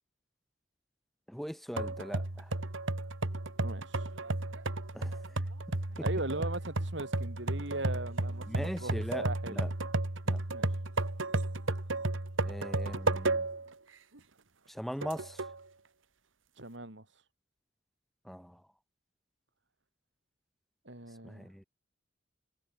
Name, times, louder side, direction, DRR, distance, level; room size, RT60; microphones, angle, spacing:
voice 1, 1.3-2.5 4.9-5.2 6.0-6.1 8.5-9.7 10.3-10.4 12.4-13.5 14.7-15.4 18.2-18.6 21.2-21.6, equal, ahead, 3.0 m, -40 dB
sound 1, 1.8-13.7 14.1-14.2 15.0-15.6, right 2 dB, 90° right, 2.0 m, -33 dB
voice 2, 3.6-4.1 6.0-9.6 10.5-10.7 16.6-17.1 20.9-21.5, right 2 dB, 65° right, 4.1 m, -39 dB
head